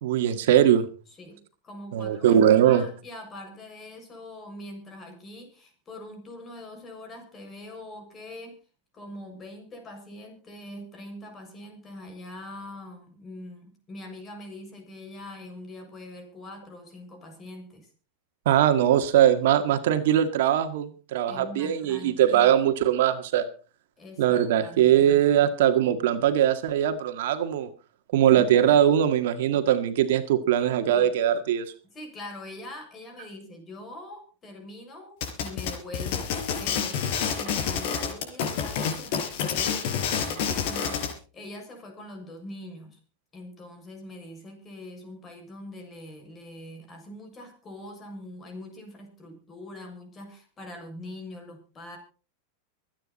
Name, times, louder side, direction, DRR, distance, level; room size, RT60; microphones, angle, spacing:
voice 1, 0.0-0.9 1.9-2.8 18.5-23.5 24.2-27.7 28.1-31.7, right 10 dB, 70° right, 8 dB, 1.8 m, -21 dB
voice 2, 1.1-8.6 8.9-17.9 21.3-22.5 24.0-25.6 28.3-28.7 30.6-31.1 31.9-43.0 43.3-52.0, left 1 dB, 20° left, 4 dB, 6.4 m, -43 dB
sound 1, 35.2-41.1, left 7 dB, 60° left, 4.8 m, -28 dB
25.0 x 9.4 x 4.2 m, 0.36 s
supercardioid pair, 145°, 0 cm